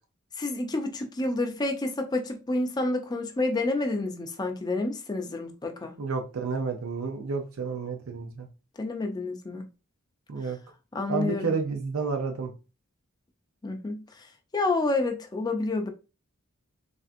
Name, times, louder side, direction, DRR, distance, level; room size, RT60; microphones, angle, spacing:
voice 1, 0.4-6.0 8.8-9.6 10.9-11.5 13.6-14.0 14.5-15.9, left 2 dB, 20° left, 0.4 m, -29 dB
voice 2, 6.0-8.5 10.3-10.6 11.1-12.5, right 4 dB, 85° right, 0.5 m, -30 dB
3.3 x 2.6 x 2.5 m
head